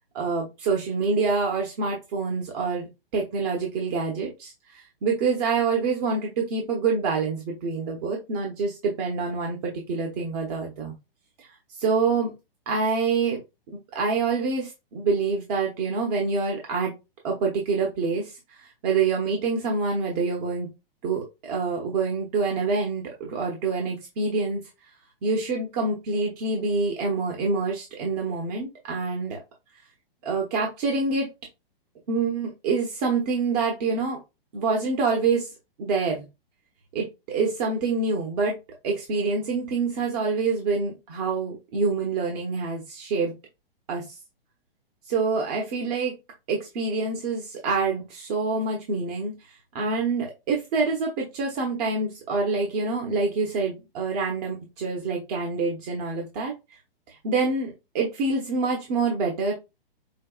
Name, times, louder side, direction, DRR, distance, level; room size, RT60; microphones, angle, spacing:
voice 1, 0.1-10.9 11.4-11.5 11.8-12.3 12.7-13.4 13.7-16.9 17.2-20.7 21.0-24.6 25.2-29.4 30.2-31.3 32.1-34.2 34.5-35.5 35.8-36.2 36.9-38.5 38.8-43.3 43.9-44.2 45.1-46.1 46.5-56.5 57.1-59.5, right 4 dB, 40° right, 0 dB, 1.0 m, -26 dB
5.5 x 2.3 x 2.4 m, 0.25 s
hypercardioid pair, 130°, 30 cm